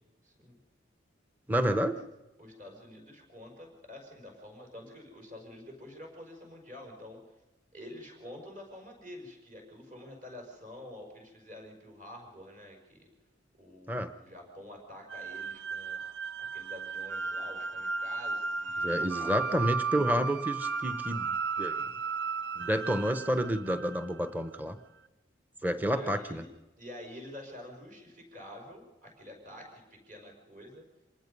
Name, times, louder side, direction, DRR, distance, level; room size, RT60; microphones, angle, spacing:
voice 1, 0.2-0.6 2.4-7.2 7.7-13.1 13.6-16.0 16.4-19.5 25.9-26.5 26.8-30.8, left 1 dB, 45° right, 2 dB, 5.4 m, -48 dB
voice 2, 1.5-2.0 13.9-14.1 18.8-21.8 22.6-24.8 25.6-26.4, equal, 10° right, 10 dB, 0.9 m, -30 dB
sound 1, 15.1-24.3, right 4 dB, 75° right, 0.6 m, -35 dB
26.0 x 19.0 x 5.4 m, 1.1 s
head